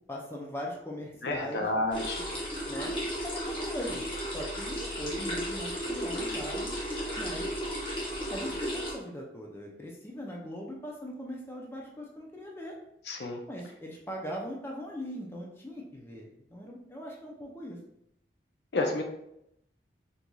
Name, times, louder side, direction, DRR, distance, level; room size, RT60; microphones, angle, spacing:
voice 1, 0.1-1.7 2.7-2.9 3.2-4.0 4.3-6.7 7.2-7.5 8.3-12.7 13.5-17.8, equal, 15° left, -1 dB, 0.5 m, -40 dB
voice 2, 1.2-2.3 13.1-13.4 18.7-19.0, left 2 dB, 70° left, 2 dB, 0.5 m, -30 dB
sound 1, 1.9-8.9, equal, 30° left, 0.8 m, -34 dB
4.4 x 2.6 x 2.3 m, 0.78 s
head